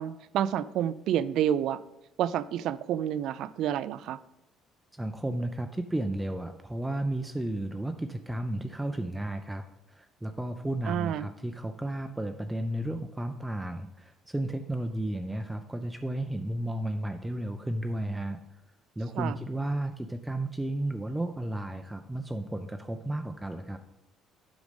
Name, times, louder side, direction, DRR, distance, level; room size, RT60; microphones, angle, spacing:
voice 1, 0.0-1.8 2.2-4.2 10.9-11.3 19.2-19.3, right 10 dB, 70° right, 16 dB, 0.4 m, -29 dB
voice 2, 4.9-18.4 19.0-23.8, right 1 dB, 10° right, 7 dB, 0.5 m, -33 dB
8.1 x 5.2 x 5.2 m, 0.88 s
cardioid pair, 115°, 0 cm